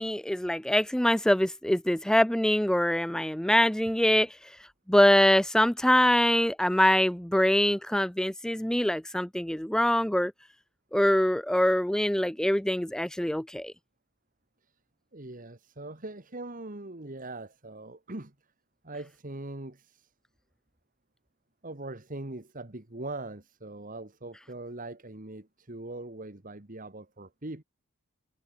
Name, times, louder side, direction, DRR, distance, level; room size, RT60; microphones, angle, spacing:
voice 1, 0.0-4.4 4.9-10.3 10.9-13.7, left 1 dB, 5° left, 0.4 m, -24 dB
voice 2, 15.1-18.3 18.8-20.1 21.6-27.6, right 2 dB, 40° right, 1.8 m, -41 dB
head